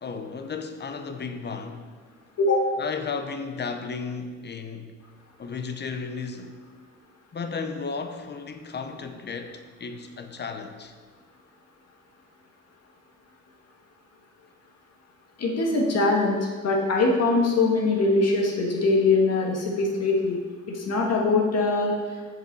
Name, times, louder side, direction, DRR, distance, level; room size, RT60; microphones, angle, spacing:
voice 1, 0.0-1.9 2.8-5.0 5.4-6.6 7.3-10.9, left 5 dB, 35° left, 0.8 m, -34 dB
voice 2, 15.4-20.4 20.7-22.0, left 3 dB, 55° left, 1.9 m, -22 dB
6.9 x 6.8 x 4.7 m
cardioid pair, 90°, 30 cm